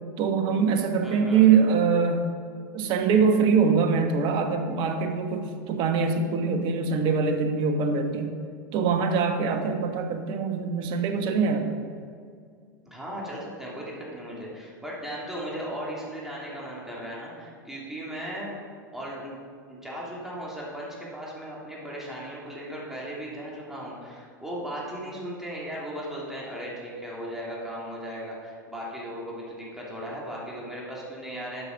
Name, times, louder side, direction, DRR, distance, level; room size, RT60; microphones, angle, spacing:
voice 1, 0.2-2.2 2.7-8.3 8.7-11.7, right 5 dB, 45° right, 5 dB, 1.4 m, -23 dB
voice 2, 1.0-1.5 12.9-18.5 18.9-19.3 19.7-31.7, equal, 5° right, -6 dB, 2.9 m, -37 dB
11.5 x 6.9 x 5.2 m, 2.2 s
hypercardioid pair, 105°, 11 cm